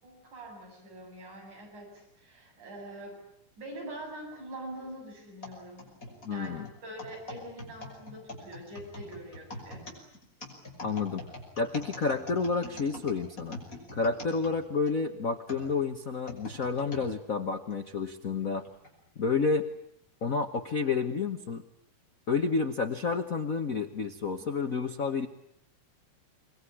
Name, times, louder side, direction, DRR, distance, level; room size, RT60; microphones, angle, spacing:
voice 1, 0.0-3.2 3.6-5.9 6.3-9.8, right 1 dB, 75° right, 0 dB, 9.3 m, -44 dB
tecleo - keyboard, 5.4-15.0 15.5-17.1 17.7-17.8 18.7-18.9, left 1 dB, 25° left, 6.1 m, -43 dB
voice 2, 6.2-6.7 10.8-11.2 11.6-13.6 13.9-18.6 19.2-19.7 20.2-21.6 22.3-25.3, left 4 dB, 70° left, 6 dB, 0.7 m, -30 dB
26.0 x 21.5 x 9.9 m, 0.74 s
omnidirectional pair, 3.5 m